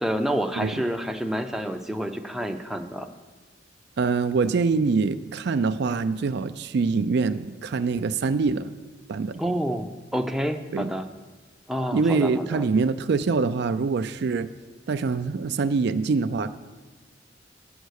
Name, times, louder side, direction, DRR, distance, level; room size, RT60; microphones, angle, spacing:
voice 1, 0.0-3.1 9.4-11.1 11.7-12.6, equal, ahead, 4 dB, 0.5 m, -28 dB
voice 2, 4.0-8.7 9.1-9.4 10.7-10.9 11.9-14.5 14.9-16.5, right 4 dB, 60° right, 12 dB, 0.4 m, -24 dB
8.2 x 7.9 x 6.4 m, 1.3 s
head